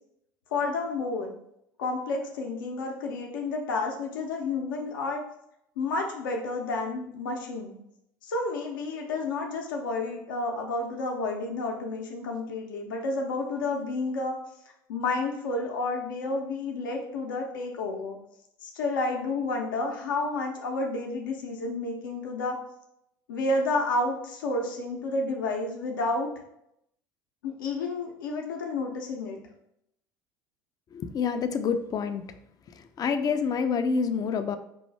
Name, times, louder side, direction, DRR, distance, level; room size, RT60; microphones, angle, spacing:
voice 1, 0.5-1.3 1.8-5.2 5.8-7.8 8.2-14.4 14.9-18.2 18.6-22.6 23.3-26.3 27.4-29.4, left 3 dB, 75° left, 1 dB, 0.7 m, -30 dB
voice 2, 30.9-32.2 32.7-34.6, left 6 dB, 35° left, 9 dB, 0.4 m, -27 dB
5.4 x 2.6 x 3.2 m, 0.77 s
figure-of-eight pair, 65°, 11 cm